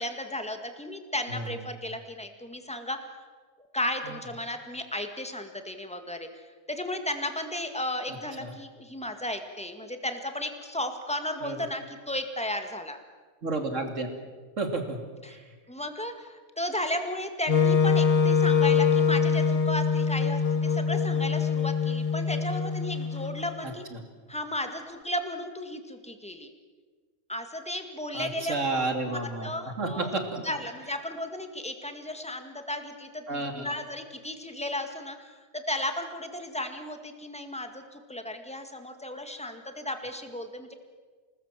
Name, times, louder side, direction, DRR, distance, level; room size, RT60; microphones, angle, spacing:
voice 1, 0.0-3.0 3.7-6.3 6.7-13.0 15.2-15.4 15.7-23.8 24.3-26.5 27.3-28.7 29.1-40.7, left 1 dB, 5° left, 6 dB, 1.9 m, -34 dB
voice 2, 13.4-14.1 14.6-15.0 15.3-15.4 23.6-24.0 28.1-30.4 33.3-33.7, right 2 dB, 55° right, 5 dB, 3.1 m, -31 dB
Wind instrument woodwind instrument, 17.5-23.5, left 6 dB, 30° left, 0.9 m, -24 dB
27.0 x 19.5 x 7.6 m, 1.4 s
omnidirectional pair, 1.6 m